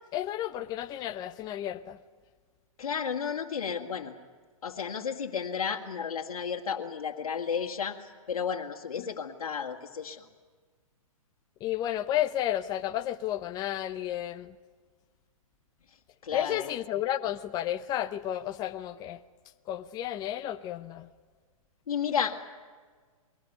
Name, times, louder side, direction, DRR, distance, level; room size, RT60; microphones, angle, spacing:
voice 1, 0.1-2.0 9.0-9.1 11.6-14.5 16.3-19.2 19.7-21.1, left 12 dB, 20° left, 0.7 m, -32 dB
voice 2, 2.8-4.1 4.6-8.0 8.3-10.3 16.2-16.7 21.9-22.4, left 7 dB, 75° left, 2.1 m, -32 dB
23.0 x 18.5 x 9.3 m
hypercardioid pair, 140°, 18 cm